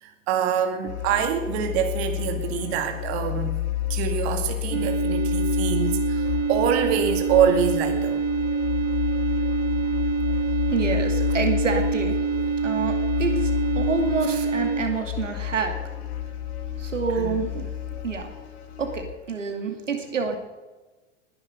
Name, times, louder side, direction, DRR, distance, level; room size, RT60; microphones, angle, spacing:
voice 1, 0.0-3.5 3.9-8.2 14.3-14.4 17.1-17.6 17.9-18.0, right 8 dB, 55° right, 6 dB, 2.2 m, -25 dB
sound 1, 0.9-19.0, left 13 dB, 60° left, 1.6 m, -30 dB
sound 2, 4.7-14.8, right 5 dB, 40° right, 2.4 m, -26 dB
voice 2, 10.7-12.2 12.6-15.7 16.7-17.5 18.0-18.3 18.8-20.4, right 5 dB, 85° right, 5 dB, 2.4 m, -28 dB
20.5 x 11.0 x 5.2 m, 1.2 s
figure-of-eight pair, 90°, 37 cm